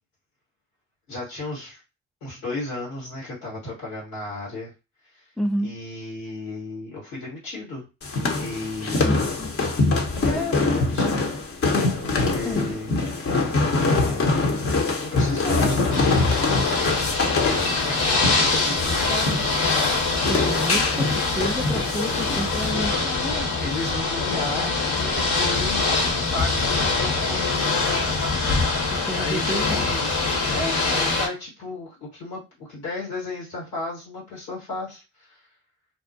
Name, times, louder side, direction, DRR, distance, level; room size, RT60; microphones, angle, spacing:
voice 1, 1.1-1.8 2.2-4.7 5.1-5.2 5.6-7.9 8.4-9.0 10.1-11.3 12.0-12.9 13.8-14.6 15.0-16.6 17.4-19.5 23.0-26.0 26.3-28.2 28.7-30.1 30.5-35.4, left 2 dB, 90° left, 1.6 m, -34 dB
voice 2, 5.4-5.7 9.1-9.6 12.4-12.7 20.3-23.0 28.9-29.8, equal, ahead, 0.4 m, -30 dB
sound 1, 8.0-22.7, left 3 dB, 45° left, 0.8 m, -24 dB
Ocean / Boat Water vehicle, 15.9-31.3, left 3 dB, 65° left, 1.1 m, -24 dB
2.6 x 2.1 x 2.6 m
hypercardioid pair, 45°, 32 cm